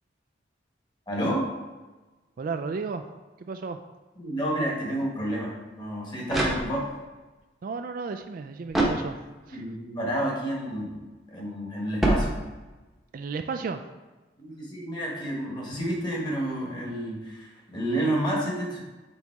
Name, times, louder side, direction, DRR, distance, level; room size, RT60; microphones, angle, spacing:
voice 1, 1.1-1.5 4.2-6.9 9.5-12.4 14.4-18.8, right 1 dB, 25° left, -3 dB, 1.5 m, -30 dB
voice 2, 2.4-3.0 3.4-3.8 7.6-9.2 9.5-9.6 13.1-13.8, right 4 dB, 45° right, 8 dB, 0.3 m, -33 dB
sound 1, 5.8-7.1 8.7-9.6 12.0-12.9, right 1 dB, ahead, 0.9 m, -27 dB
7.1 x 4.1 x 4.6 m, 1.2 s
head